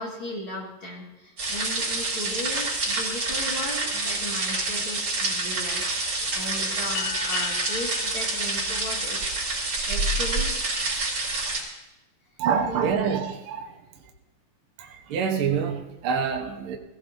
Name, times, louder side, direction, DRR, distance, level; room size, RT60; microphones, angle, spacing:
voice 1, 0.0-9.4 9.9-10.5 12.6-13.1, left 1 dB, 45° left, -3 dB, 2.7 m, -36 dB
sound 1, 1.4-11.6, right 2 dB, 40° right, 4.6 m, -27 dB
sound 2, 6.9-9.9, left 9 dB, 70° left, 2.0 m, -37 dB
voice 2, 12.4-14.1 14.8-16.8, right 6 dB, 60° right, 2 dB, 1.6 m, -27 dB
21.5 x 15.5 x 2.7 m, 0.94 s
omnidirectional pair, 3.6 m